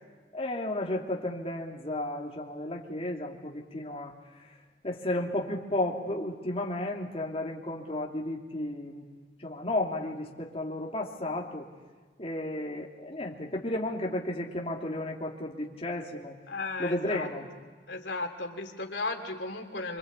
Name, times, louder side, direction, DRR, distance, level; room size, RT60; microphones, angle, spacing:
voice 1, 0.3-4.1 4.8-9.1 9.4-11.7 12.2-16.4 16.8-17.5, left 1 dB, 35° left, -1 dB, 3.0 m, -33 dB
voice 2, 16.5-17.3 17.9-20.0, left 3 dB, 85° left, 4 dB, 2.8 m, -35 dB
26.5 x 26.0 x 8.4 m, 1.4 s
head